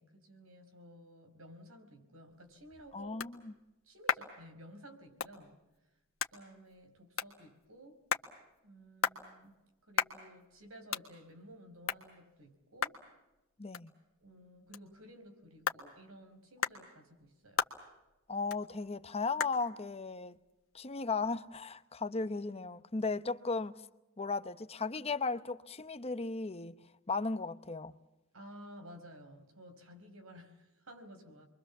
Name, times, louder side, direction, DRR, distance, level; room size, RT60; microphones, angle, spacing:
voice 1, 0.0-3.2 3.8-5.7 6.3-8.0 8.6-13.0 14.2-17.6 28.3-31.5, equal, 90° right, 5.0 m, -54 dB
sound 1, 2.3-21.6, left 7 dB, 75° left, 1.6 m, -41 dB
voice 2, 2.9-3.5 13.6-13.9 18.3-20.4 20.7-23.8 24.2-26.7 27.1-27.9, left 4 dB, 30° left, 0.9 m, -36 dB
29.0 x 23.5 x 7.3 m
head